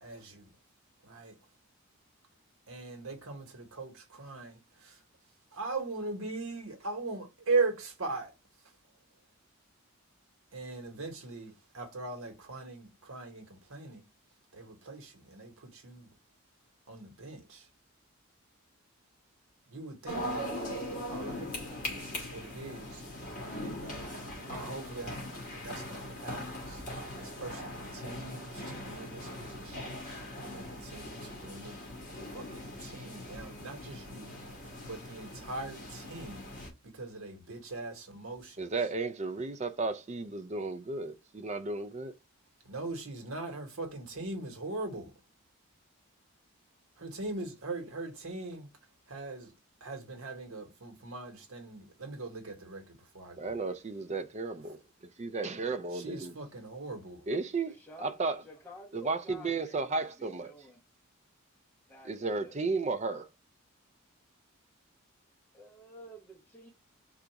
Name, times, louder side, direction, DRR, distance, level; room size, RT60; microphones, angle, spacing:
voice 1, 0.0-0.5 1.0-1.4 2.7-5.0 5.5-8.3 10.5-14.0 14.5-16.2 16.9-17.7 19.7-21.5 21.9-23.0 23.4-25.2 25.5-26.9 27.2-31.8 32.1-38.7 42.6-45.1 47.0-48.7 49.1-49.5 49.8-53.6 55.9-57.3, right 3 dB, 75° right, 1.2 m, -40 dB
sound 1, 20.0-36.7, left 1 dB, 35° left, 1.5 m, -41 dB
voice 2, 38.6-42.1 53.4-54.8 55.2-56.3 57.3-58.4 58.9-60.5 62.0-63.3, right 3 dB, 30° right, 0.4 m, -34 dB
voice 3, 57.7-60.8 61.9-62.6 65.5-66.7, left 1 dB, 10° left, 1.1 m, -51 dB
3.9 x 2.4 x 4.5 m
head